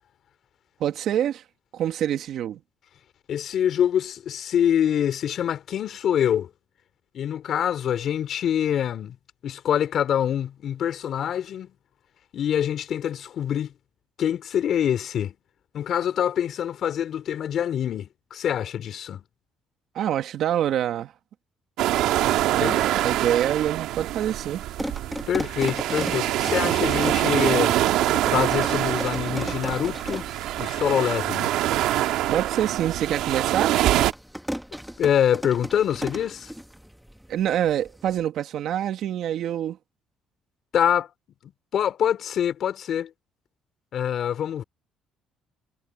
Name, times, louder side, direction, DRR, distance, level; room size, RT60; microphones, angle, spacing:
voice 1, 0.8-1.4 1.7-2.6 20.0-21.1 22.5-24.6 32.3-33.8 37.3-39.8, right 10 dB, 65° right, 1.8 m, -26 dB
voice 2, 3.3-6.5 7.1-9.1 9.4-11.7 12.3-13.7 14.2-15.3 15.7-19.2 22.6-22.8 25.3-27.8 28.2-30.3 30.6-31.5 35.0-36.5 40.7-41.1 41.4-43.1 43.9-44.6, left 9 dB, 60° left, 3.3 m, -25 dB
sound 1, 21.8-34.1, right 14 dB, 80° right, 1.9 m, -24 dB
sound 2, 24.6-38.2, equal, ahead, 2.0 m, -37 dB
cardioid pair, 90°, 0 cm